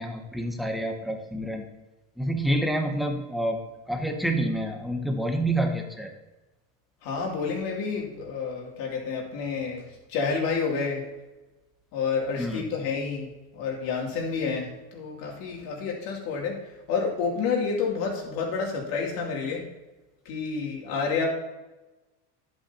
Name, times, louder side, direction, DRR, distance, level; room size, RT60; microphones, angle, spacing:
voice 1, 0.0-1.7 2.2-3.6 3.9-6.1 12.4-12.7, right 1 dB, ahead, 4 dB, 0.9 m, -28 dB
voice 2, 7.0-11.0 11.9-19.6 20.2-21.3, left 5 dB, 60° left, -1 dB, 2.8 m, -29 dB
11.0 x 8.0 x 2.9 m, 1.1 s
supercardioid pair, 135°, 38 cm